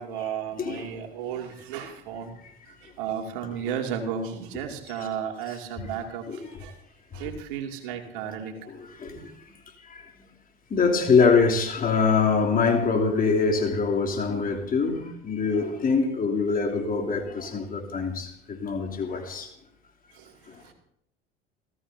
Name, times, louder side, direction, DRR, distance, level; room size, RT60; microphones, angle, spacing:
voice 1, 0.0-6.8 7.1-8.7 9.1-9.3 20.1-20.7, right 8 dB, 60° right, 2.6 m, -34 dB
voice 2, 9.0-9.3 9.8-10.1 10.7-19.5 20.5-20.7, left 4 dB, 30° left, 3.2 m, -24 dB
29.5 x 15.0 x 2.8 m
figure-of-eight pair, 70°, 30 cm